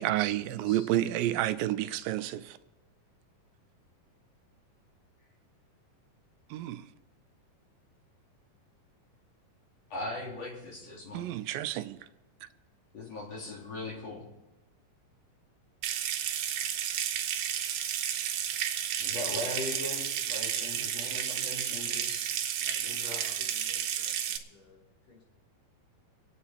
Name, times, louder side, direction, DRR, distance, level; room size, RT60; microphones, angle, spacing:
voice 1, 0.0-2.6 6.5-6.9 11.1-12.0, right 13 dB, 90° right, 2.4 m, -30 dB
voice 2, 9.9-11.3 12.9-14.2 17.8-17.9 19.0-22.3 22.8-23.2, left 2 dB, 50° left, 4.1 m, -39 dB
Water tap faucet / Sink (filling or washing) / Trickle dribble, 15.8-24.4, right 10 dB, 70° right, 2.2 m, -32 dB
voice 3, 22.6-25.2, left 4 dB, 70° left, 4.8 m, -57 dB
26.0 x 8.9 x 4.3 m
omnidirectional pair, 4.0 m